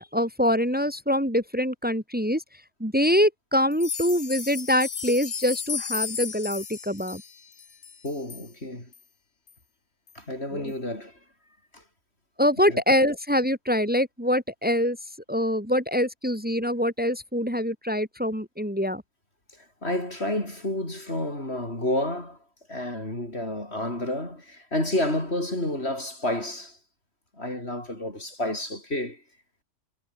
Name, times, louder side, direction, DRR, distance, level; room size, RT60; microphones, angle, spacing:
voice 1, 0.0-2.4 2.8-7.2 10.5-10.6 12.4-15.0 15.3-19.0, equal, 5° right, 4.3 m, -24 dB
sound 1, 3.7-8.5 8.9-9.0 9.5-9.6 10.1-10.2, left 6 dB, 75° left, 2.0 m, -34 dB
voice 2, 8.0-8.9 10.1-11.2 11.7-11.8 12.7-12.8 19.6-22.4 22.7-26.8 27.4-29.2, left 1 dB, 50° left, 7.8 m, -30 dB
omnidirectional pair, 1.4 m